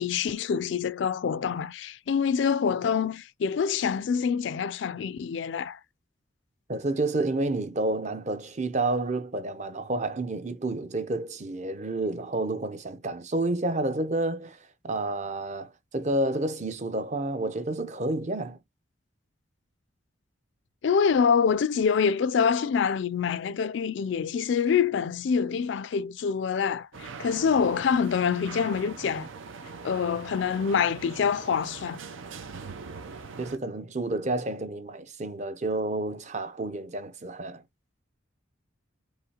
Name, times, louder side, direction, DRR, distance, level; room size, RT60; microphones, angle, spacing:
voice 1, 0.0-5.8 20.8-29.3 29.8-32.0, left 6 dB, 70° left, 0.3 m, -26 dB
voice 2, 6.7-14.6 14.8-18.6 33.4-37.6, right 2 dB, 35° right, 0.6 m, -30 dB
sound 1, 26.9-33.6, right 4 dB, 90° right, 0.7 m, -42 dB
4.9 x 3.1 x 2.9 m
head